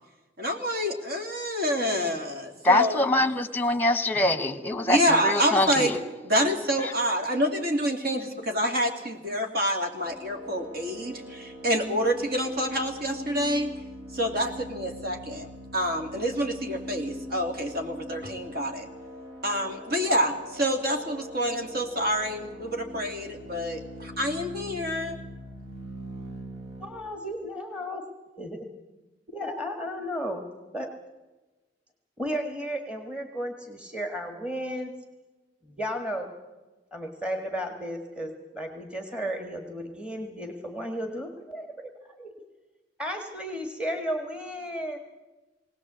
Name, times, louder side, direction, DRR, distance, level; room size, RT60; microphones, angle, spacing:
voice 1, 0.4-3.1 4.9-5.9 6.2-13.7 14.1-15.5 15.7-18.9 19.4-25.2, equal, 60° right, 4 dB, 2.9 m, -27 dB
voice 2, 2.6-6.0, left 2 dB, 10° left, 10 dB, 1.2 m, -24 dB
sound 1, 10.0-26.9, equal, 80° right, 6.0 m, -42 dB
voice 3, 26.8-28.0 28.4-28.7 29.3-30.5 30.7-30.9 32.2-34.9 35.6-36.3 36.9-41.9 42.2-42.3 43.0-45.0, equal, 5° right, 4 dB, 1.7 m, -34 dB
20.0 x 18.0 x 8.0 m, 1.2 s
head